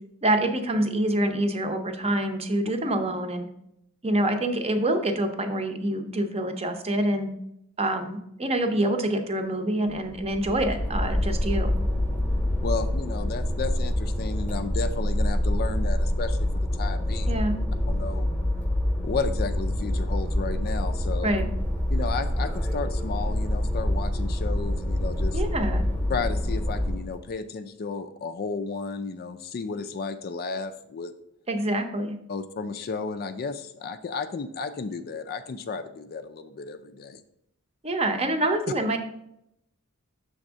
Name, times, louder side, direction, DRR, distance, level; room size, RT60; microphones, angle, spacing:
voice 1, 0.2-3.5 4.0-7.3 7.8-11.7 17.3-17.5 21.2-21.4 25.3-25.9 31.5-32.2 37.8-39.0, right 1 dB, 30° right, 6 dB, 0.7 m, -26 dB
sound 1, 9.9-27.2, left 1 dB, 5° left, 0.9 m, -26 dB
voice 2, 12.6-17.4 17.9-18.3 19.0-21.3 21.9-25.4 26.1-31.1 32.3-37.2, left 4 dB, 45° left, 9 dB, 0.4 m, -33 dB
6.5 x 3.5 x 6.1 m, 0.78 s
head